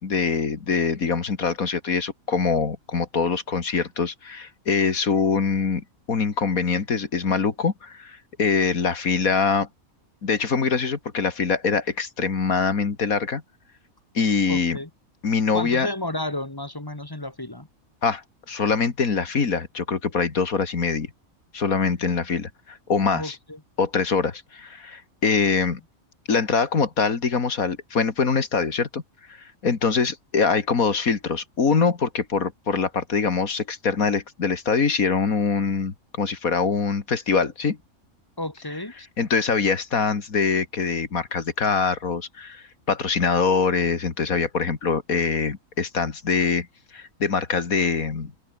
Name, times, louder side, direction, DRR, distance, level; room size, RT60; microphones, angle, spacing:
voice 1, 0.0-9.7 10.2-13.4 14.1-14.8 15.2-15.9 18.0-21.1 21.5-23.4 23.8-25.8 26.3-29.0 29.3-37.8 39.2-46.7 46.9-48.3, left 5 dB, 75° left, 2.6 m, -24 dB
voice 2, 14.5-14.9 15.5-17.7 23.1-23.6 38.4-39.1, left 1 dB, 15° left, 2.0 m, -32 dB
open air
omnidirectional pair, 1.5 m